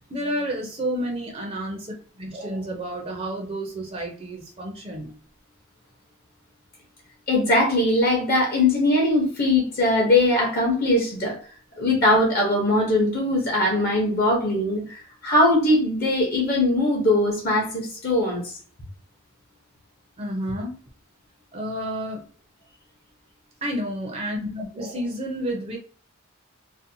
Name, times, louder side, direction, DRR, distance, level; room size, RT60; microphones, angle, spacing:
voice 1, 0.1-5.1 20.2-20.7 21.5-22.2 23.6-25.8, equal, 30° right, 0 dB, 0.4 m, -30 dB
voice 2, 7.3-11.4 11.8-18.5, left 1 dB, 45° left, -1 dB, 0.7 m, -21 dB
2.5 x 2.1 x 2.6 m, 0.41 s
head